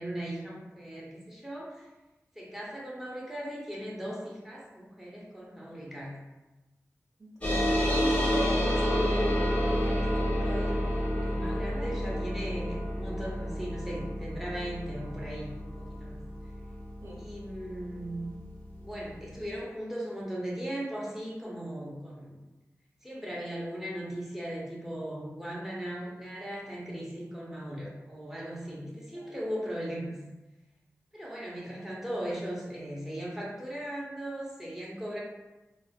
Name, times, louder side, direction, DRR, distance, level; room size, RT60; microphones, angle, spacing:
voice 1, 0.0-1.9 2.3-6.2 9.6-10.9 11.2-16.2 17.1-18.3 18.8-22.4 23.0-30.1 31.1-35.2, right 1 dB, 5° right, -5 dB, 0.7 m, -38 dB
voice 2, 7.2-9.5 9.8-9.9 11.6-11.9 17.0-17.2 29.1-29.5, equal, 60° right, -5 dB, 0.7 m, -40 dB
sound 1, 7.4-18.3, equal, 25° left, 0.7 m, -29 dB
2.4 x 2.3 x 2.2 m, 1.1 s
wide cardioid pair, 60°, 5 cm